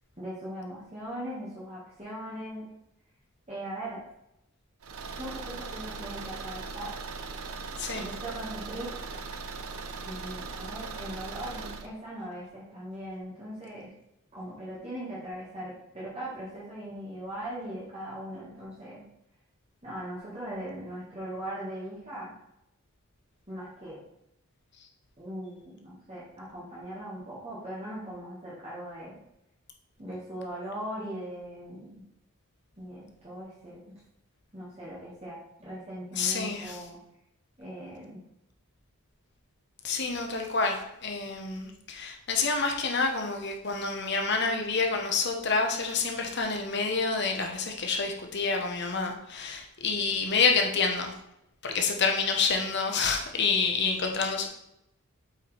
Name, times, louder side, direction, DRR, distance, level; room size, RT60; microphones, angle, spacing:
voice 1, 0.2-2.7 3.5-4.0 5.1-6.9 7.9-9.0 9.9-13.9 14.3-19.0 19.8-22.3 23.5-24.0 25.2-29.2 30.0-32.0 32.8-33.8 34.5-37.0 37.6-38.2, right 1 dB, 30° right, -8 dB, 1.7 m, -39 dB
Car / Engine, 4.8-11.9, right 4 dB, 75° right, 0.7 m, -39 dB
voice 2, 36.1-36.8 39.8-51.1 51.6-54.5, left 4 dB, 50° left, 3 dB, 1.1 m, -28 dB
8.0 x 5.7 x 3.4 m, 0.84 s
head